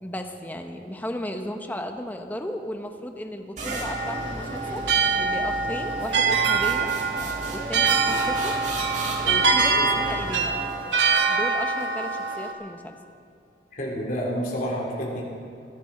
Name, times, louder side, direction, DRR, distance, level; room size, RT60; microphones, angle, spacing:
voice 1, 0.0-6.9 7.5-8.6 9.2-10.6 11.3-13.0, left 1 dB, 10° left, 5 dB, 0.9 m, -35 dB
sound 1, 3.6-11.0, right 1 dB, 40° right, 1.8 m, -35 dB
sound 2, 3.7-12.5, right 4 dB, 90° right, 1.1 m, -24 dB
voice 2, 13.7-15.2, equal, 50° left, -4 dB, 3.7 m, -29 dB
22.0 x 10.5 x 4.3 m, 2.5 s
head